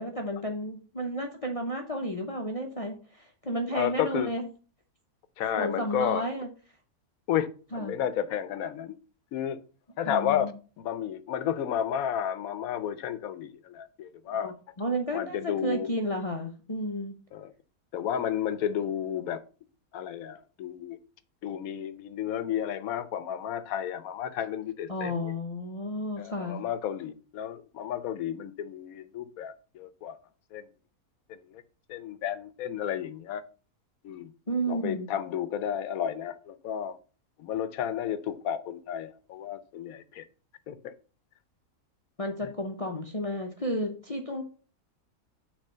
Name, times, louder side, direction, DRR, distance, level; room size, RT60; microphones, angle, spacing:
voice 1, 0.0-4.5 5.5-6.5 7.7-8.0 10.1-10.5 14.3-17.1 24.9-26.6 34.5-35.1 42.2-44.4, equal, 35° left, 0.6 m, -32 dB
voice 2, 3.7-4.3 5.4-6.3 7.3-8.9 9.3-9.6 10.0-10.5 10.8-14.5 15.1-15.9 17.3-17.5 17.9-19.4 19.9-21.0 21.4-25.3 26.2-30.2 30.5-30.7 31.3-31.6 31.9-33.4 34.0-34.3 34.7-37.0 37.4-40.2 40.7-40.9 42.4-42.5, left 9 dB, 75° left, 1.1 m, -32 dB
6.7 x 3.4 x 5.4 m
omnidirectional pair, 1.5 m